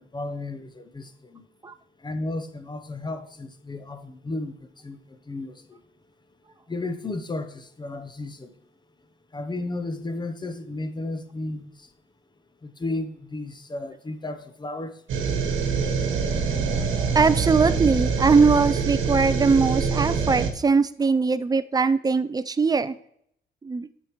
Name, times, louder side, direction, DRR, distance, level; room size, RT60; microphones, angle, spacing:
voice 1, 0.0-1.5 2.0-5.8 6.7-8.6 9.3-11.9 12.6-15.0, left 2 dB, 20° left, 0.8 m, -34 dB
sound 1, 15.1-20.5, right 5 dB, 75° right, 1.2 m, -25 dB
voice 2, 17.1-23.0 23.6-23.9, right 4 dB, 20° right, 0.4 m, -21 dB
8.6 x 6.4 x 3.0 m
cardioid pair, 90°, 20 cm